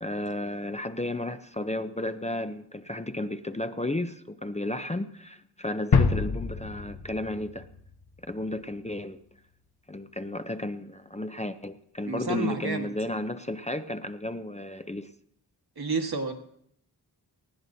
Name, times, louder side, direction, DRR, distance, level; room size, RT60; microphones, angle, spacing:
voice 1, 0.0-7.7 8.3-9.2 9.9-15.1, left 1 dB, 20° left, 9 dB, 0.5 m, -33 dB
sound 1, 5.9-8.6, left 5 dB, 70° left, 0.9 m, -27 dB
voice 2, 12.1-12.9 15.8-16.3, right 3 dB, 70° right, 4 dB, 1.7 m, -30 dB
20.0 x 14.5 x 2.7 m, 0.68 s
wide cardioid pair, 75°, 39 cm